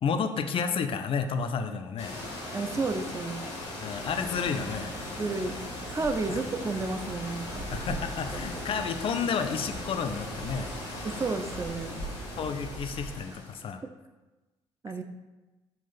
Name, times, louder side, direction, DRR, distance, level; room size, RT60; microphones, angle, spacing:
voice 1, 0.0-2.2 3.8-5.0 6.3-6.4 7.7-10.7 12.4-13.8, left 6 dB, 40° left, 7 dB, 0.4 m, -31 dB
sound 1, 2.0-13.7, left 1 dB, 80° left, 0.9 m, -38 dB
voice 2, 2.5-3.5 5.2-5.6 5.9-7.7 8.3-8.4 11.0-12.0 13.8-13.9 14.8-15.0, right 3 dB, 20° right, 8 dB, 0.4 m, -31 dB
sound 2, 4.0-12.8, right 4 dB, 65° right, 0.9 m, -45 dB
5.4 x 2.5 x 3.9 m, 1.1 s
figure-of-eight pair, 45°, 14 cm